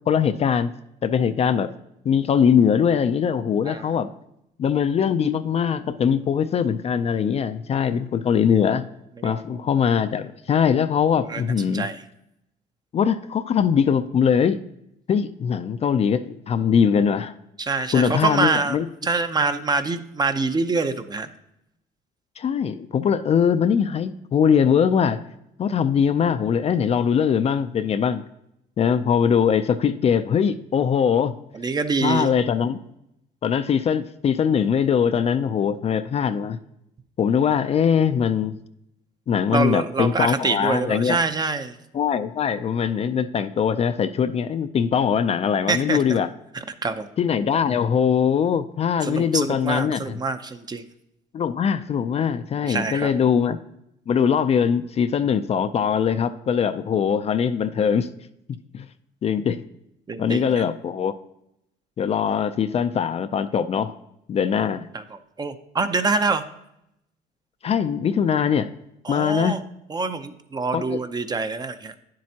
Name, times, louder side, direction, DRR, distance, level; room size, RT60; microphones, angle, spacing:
voice 1, 0.1-0.7 1.0-1.7 2.0-4.1 4.6-8.9 9.2-11.9 12.9-14.6 15.1-17.3 17.9-18.9 22.4-25.2 25.6-28.2 28.8-31.4 32.0-32.8 33.4-36.6 37.2-38.6 39.3-41.2 41.9-46.3 47.2-50.2 51.3-53.6 54.1-58.1 58.7-58.9 59.2-59.6 60.2-61.1 62.0-63.9 64.3-64.9 67.6-68.7 69.1-69.6 70.7-71.0, left 7 dB, 40° left, 11 dB, 0.4 m, -21 dB
voice 2, 17.6-21.3 31.5-32.3 39.5-41.8 45.7-46.2 46.8-47.1 49.0-50.8 52.7-53.1 60.1-60.6 64.9-66.4 69.0-69.6 69.9-71.9, right 4 dB, 25° right, 10 dB, 0.6 m, -25 dB
9.4 x 7.5 x 2.8 m, 0.81 s
cardioid pair, 110°, 17 cm